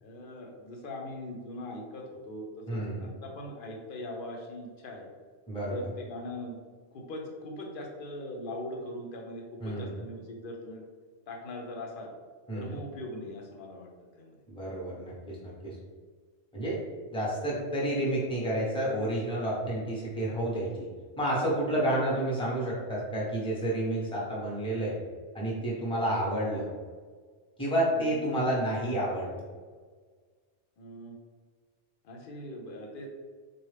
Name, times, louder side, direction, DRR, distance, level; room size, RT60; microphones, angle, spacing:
voice 1, 0.0-5.1 5.6-6.6 6.9-10.8 11.3-12.1 12.5-14.4 27.9-28.4 30.8-31.2 32.0-33.1, left 1 dB, 55° left, 1 dB, 0.8 m, -41 dB
voice 2, 2.7-3.1 5.5-5.9 9.6-10.0 12.5-12.7 14.5-15.8 16.5-16.8 17.1-20.7 21.2-25.0 25.3-26.7 27.6-29.4, right 1 dB, 5° left, -5 dB, 0.8 m, -30 dB
3.9 x 2.3 x 3.2 m, 1.5 s
omnidirectional pair, 1.2 m